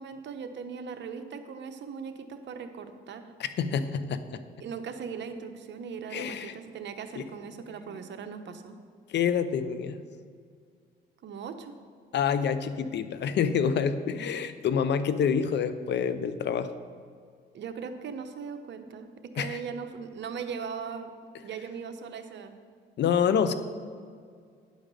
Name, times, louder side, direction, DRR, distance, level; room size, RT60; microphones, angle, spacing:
voice 1, 0.0-3.3 4.6-8.8 11.2-11.8 17.5-21.1 21.4-22.5, right 6 dB, 65° right, 7 dB, 0.9 m, -39 dB
voice 2, 3.4-4.4 6.1-6.5 7.2-7.3 9.1-10.0 12.1-16.7 19.4-19.6 23.0-23.5, left 7 dB, 60° left, 12 dB, 0.6 m, -27 dB
10.0 x 5.1 x 6.7 m, 2.1 s
cardioid pair, 90°, 20 cm